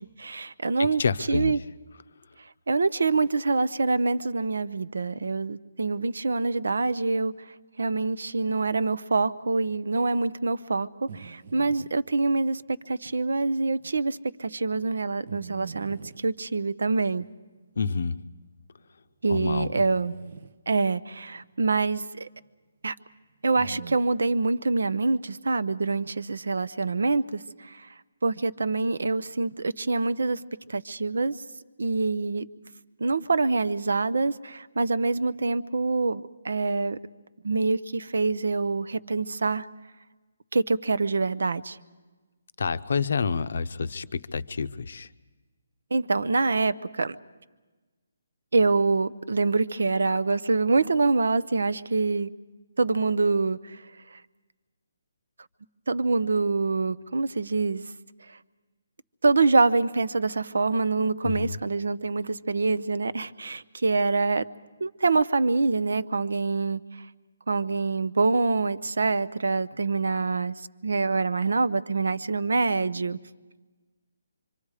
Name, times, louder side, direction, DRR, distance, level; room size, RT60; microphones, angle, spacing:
voice 1, 0.2-1.0 1.3-1.6 2.7-7.3 7.8-12.6 12.9-17.3 19.2-20.1 20.7-22.3 22.8-22.9 23.4-27.9 28.2-30.4 30.7-31.4 31.8-32.5 33.0-37.0 37.4-39.7 40.5-41.8 45.9-47.2 48.5-52.3 52.8-53.8 55.9-57.8 59.2-64.4 64.8-66.8 67.5-73.2, right 3 dB, 80° right, 13 dB, 0.8 m, -25 dB
voice 2, 0.8-1.6 17.8-18.2 19.3-19.7 42.6-45.1 61.2-61.6, left 5 dB, 50° left, 12 dB, 0.6 m, -28 dB
sound 1, 11.1-11.9 13.1-13.2 13.8-13.9 15.3-16.3 17.2-17.3 18.4-18.5 19.7-20.5 23.6-24.0, right 6 dB, 35° right, 0.6 m, -42 dB
25.5 x 25.0 x 4.9 m, 1.3 s
hypercardioid pair, 180°, 0 cm